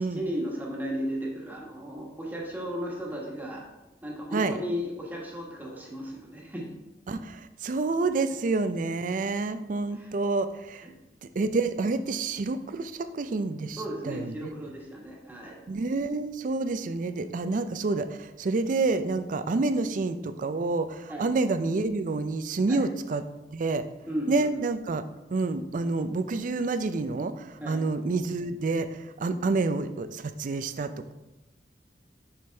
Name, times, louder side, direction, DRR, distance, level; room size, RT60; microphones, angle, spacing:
voice 1, 0.0-3.7 4.0-6.7 9.9-10.1 10.8-10.9 13.8-15.6 21.1-21.3 22.7-22.9 24.1-24.6 27.6-27.8, equal, 10° right, -2 dB, 1.4 m, -35 dB
voice 2, 7.1-10.9 11.2-14.5 15.7-23.2 23.5-23.9 24.3-25.0 25.3-31.1, right 3 dB, 50° right, 11 dB, 0.4 m, -28 dB
6.2 x 5.9 x 3.4 m, 1.0 s
head